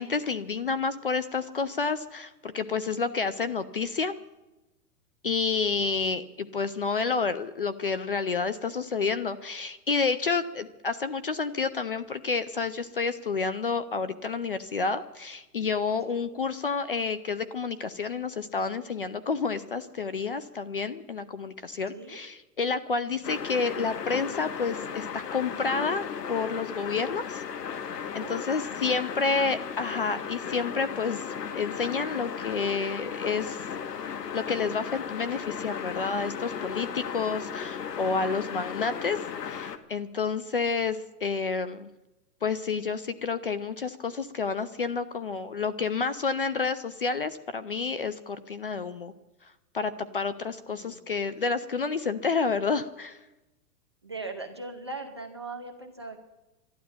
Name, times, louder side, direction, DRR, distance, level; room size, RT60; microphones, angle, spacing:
voice 1, 0.0-4.2 5.2-27.4 28.1-31.2 31.5-33.6 34.3-41.9 42.4-49.1 49.7-53.2, left 5 dB, 40° left, 14 dB, 0.4 m, -29 dB
voice 2, 16.1-16.4 21.9-22.2 23.2-23.3 28.2-29.3 50.7-51.0 54.0-56.2, right 3 dB, 20° right, 2 dB, 0.5 m, -40 dB
sound 1, 23.2-39.8, left 7 dB, 85° left, 1.7 m, -36 dB
12.0 x 12.0 x 10.0 m, 1.0 s
hypercardioid pair, 175°, 47 cm